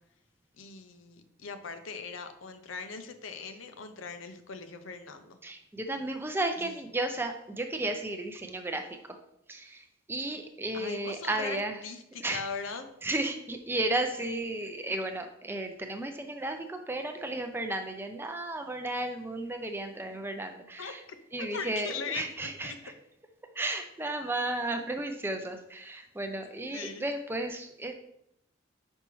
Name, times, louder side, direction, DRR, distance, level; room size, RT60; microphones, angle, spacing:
voice 1, 0.6-5.4 6.6-6.8 10.7-12.9 20.8-20.9 21.4-22.3 22.6-22.8 24.7-24.9 26.4-27.1, left 5 dB, 85° left, 8 dB, 0.6 m, -40 dB
voice 2, 5.4-9.2 9.5-11.8 12.2-12.4 13.0-21.0 21.3-22.9 23.5-27.9, right 2 dB, 10° right, 6 dB, 0.4 m, -34 dB
5.7 x 5.4 x 3.0 m, 0.77 s
head